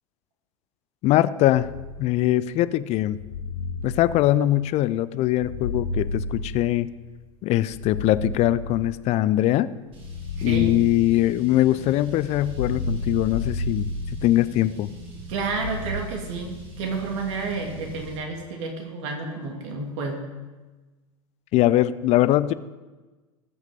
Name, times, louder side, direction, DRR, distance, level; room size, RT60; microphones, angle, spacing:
voice 1, 1.0-1.7 2.0-3.2 3.8-6.9 7.4-9.7 10.4-13.9 14.2-14.9 21.5-22.5, left 14 dB, 40° left, 16 dB, 0.5 m, -21 dB
sound 1, 1.5-2.3 3.0-4.7 5.3-7.1 7.6-9.2 10.0-11.6 12.2-14.7 15.3-15.9, left 3 dB, 60° left, 2.5 m, -32 dB
Car, 9.9-18.2, right 2 dB, 30° right, 3.8 m, -41 dB
voice 2, 10.4-10.7 15.3-20.2, right 4 dB, 55° right, 2 dB, 2.7 m, -30 dB
19.0 x 6.5 x 5.1 m, 1.2 s
figure-of-eight pair, 85°, 18 cm